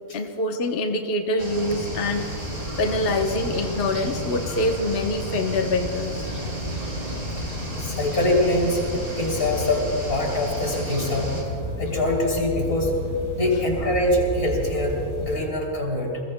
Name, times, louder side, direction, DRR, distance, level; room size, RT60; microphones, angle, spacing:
voice 1, 0.1-6.3, left 2 dB, 45° left, 3 dB, 1.0 m, -25 dB
sound 1, 1.4-11.4, equal, 45° right, 4.1 m, -33 dB
sound 2, 2.0-15.4, left 1 dB, 20° right, 4.0 m, -34 dB
voice 2, 7.8-8.9 9.2-11.3 11.8-12.9 13.4-16.2, left 1 dB, 85° left, -1 dB, 3.8 m, -24 dB
29.5 x 21.0 x 2.2 m, 2.7 s
omnidirectional pair, 1.5 m